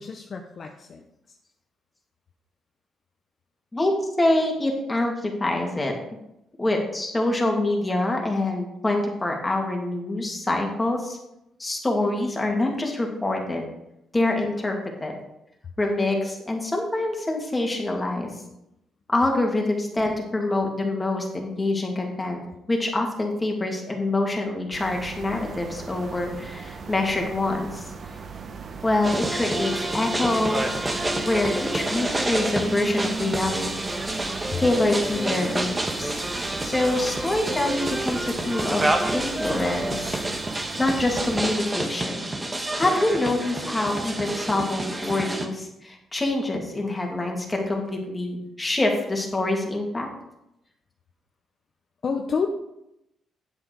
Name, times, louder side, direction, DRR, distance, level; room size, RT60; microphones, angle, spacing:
voice 1, 0.0-1.4 28.1-28.7 34.5-34.6 52.0-52.5, left 5 dB, 50° left, 4 dB, 0.9 m, -31 dB
voice 2, 3.7-5.9 6.6-11.2 11.6-13.6 14.1-15.1 15.8-18.3 19.1-22.4 22.7-27.9 28.8-30.7 31.2-33.7 34.6-36.2 36.6-40.2 40.8-42.4 42.7-50.1, left 2 dB, 20° left, 1 dB, 2.5 m, -25 dB
sound 1, 24.7-41.6, right 5 dB, 45° right, 1.0 m, -39 dB
sound 2, 29.0-45.5, right 1 dB, 20° right, 1.5 m, -28 dB
8.8 x 7.9 x 4.8 m, 0.84 s
cardioid pair, 90°, 0 cm